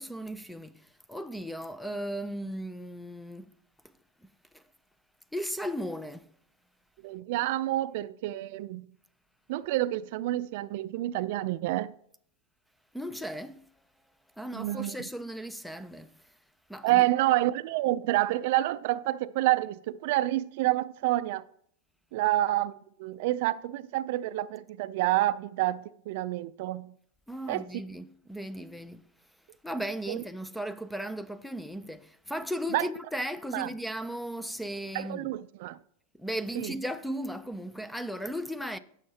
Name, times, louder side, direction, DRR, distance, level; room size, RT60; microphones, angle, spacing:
voice 1, 0.0-3.5 4.5-4.6 5.3-6.3 12.9-13.7 14.4-16.1 16.7-17.0 27.3-29.1 29.6-35.3 36.2-38.8, equal, ahead, 0.4 m, -36 dB
voice 2, 7.0-8.9 9.5-11.9 14.5-15.0 16.8-21.4 22.1-26.9 27.5-27.6 30.1-30.2 32.7-32.9 33.5-33.7 34.9-35.8 36.6-36.7, right 16 dB, 60° right, 0.4 m, -28 dB
16.0 x 6.5 x 2.8 m
supercardioid pair, 135°, 0 cm